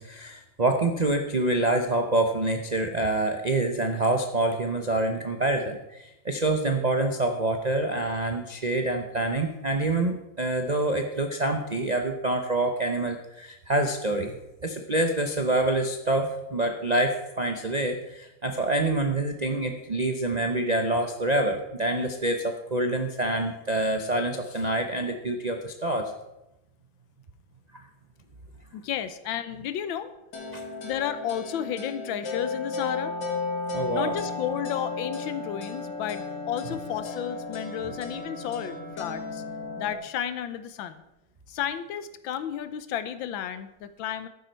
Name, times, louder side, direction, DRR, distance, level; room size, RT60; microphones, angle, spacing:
voice 1, 0.0-14.3 14.6-26.1 30.5-30.6 33.7-34.1, right 2 dB, 70° right, 5 dB, 0.4 m, -26 dB
voice 2, 28.7-30.1 30.8-33.2 33.9-39.4 39.8-41.0 41.5-44.3, left 9 dB, 85° left, 13 dB, 1.5 m, -32 dB
sound 1, 30.3-39.9, left 3 dB, 60° left, 2.5 m, -34 dB
12.0 x 9.4 x 4.5 m, 0.92 s
omnidirectional pair, 2.1 m